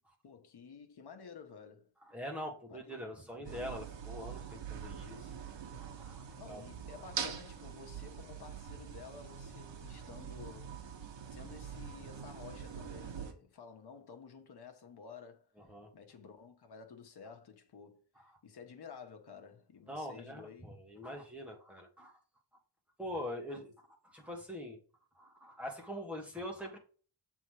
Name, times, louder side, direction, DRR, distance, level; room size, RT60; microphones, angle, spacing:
voice 1, 0.2-1.9 2.7-3.6 6.4-15.5 15.9-20.7 23.6-23.7, left 6 dB, 60° left, 1.3 m, -53 dB
voice 2, 2.1-5.3 5.8-6.6 15.7-15.9 19.9-22.1 23.0-23.7 24.1-24.8 25.2-26.8, equal, 5° right, 1.5 m, -43 dB
sound 1, 3.4-13.3, right 7 dB, 70° right, 1.3 m, -44 dB
7.2 x 3.8 x 4.8 m
wide cardioid pair, 170°, 45 cm